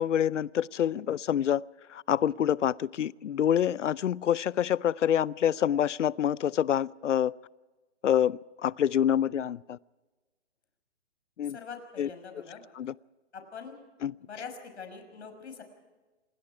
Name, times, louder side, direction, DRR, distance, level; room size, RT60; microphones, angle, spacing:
voice 1, 0.0-1.6 1.9-7.3 8.0-9.8 11.4-11.6 12.0-12.1 12.8-12.9 14.0-14.1, left 10 dB, 85° left, 0.6 m, -26 dB
voice 2, 11.4-12.6 13.3-13.8 14.2-15.6, left 5 dB, 70° left, 5.9 m, -43 dB
27.5 x 20.5 x 4.8 m
hypercardioid pair, 165°, 35 cm